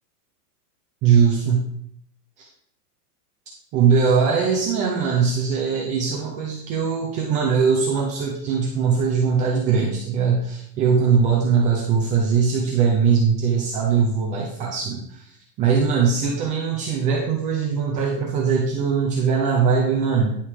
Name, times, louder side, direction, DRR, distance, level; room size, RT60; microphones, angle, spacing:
voice 1, 1.0-1.7 2.4-2.5 3.7-20.4, right 6 dB, 15° right, -2 dB, 0.6 m, -21 dB
10.0 x 5.5 x 4.8 m, 0.67 s
supercardioid pair, 165°, 48 cm